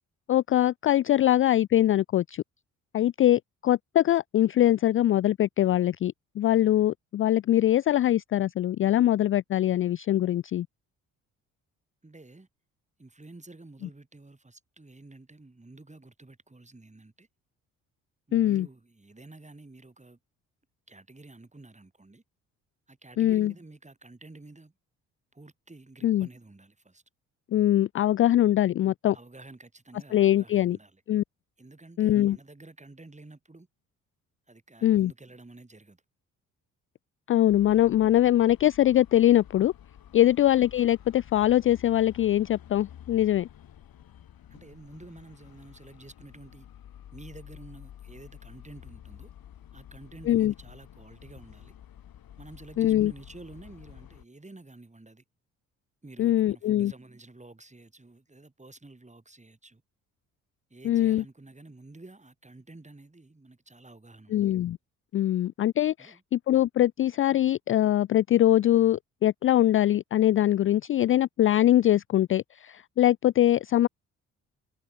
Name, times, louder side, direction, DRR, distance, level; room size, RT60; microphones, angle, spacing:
voice 1, 0.3-2.4 2.9-10.7 18.3-18.7 23.2-23.5 26.0-26.3 27.5-29.2 30.1-30.8 31.1-31.2 32.0-32.4 34.8-35.1 37.3-39.7 40.1-43.5 50.3-50.5 52.8-53.1 56.2-56.9 60.8-61.2 64.3-64.8 65.1-73.9, left 13 dB, 35° left, 0.4 m, -22 dB
voice 2, 12.0-12.5 13.0-17.3 18.3-20.2 20.9-22.2 22.9-24.7 25.3-27.0 29.1-31.0 31.6-33.7 34.5-36.0 40.2-40.3 44.5-46.7 47.1-49.3 49.7-51.7 52.4-55.2 56.0-59.8 60.7-64.5 66.0-66.2, right 2 dB, 15° right, 6.7 m, -50 dB
sound 1, 37.5-54.2, left 10 dB, 55° left, 4.2 m, -50 dB
hypercardioid pair, 45°, 41 cm